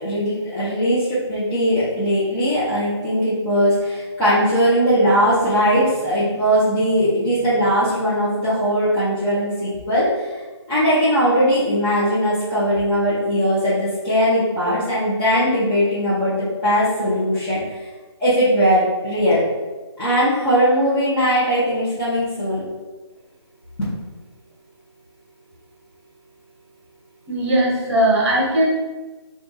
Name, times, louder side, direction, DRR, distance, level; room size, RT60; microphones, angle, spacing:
voice 1, 0.0-10.4 10.7-17.6 18.2-19.5 20.0-22.6, equal, 15° left, -15 dB, 0.9 m, -19 dB
voice 2, 27.3-28.7, right 1 dB, 35° right, -3 dB, 1.2 m, -18 dB
3.4 x 2.5 x 3.9 m, 1.2 s
figure-of-eight pair, 155°, 15 cm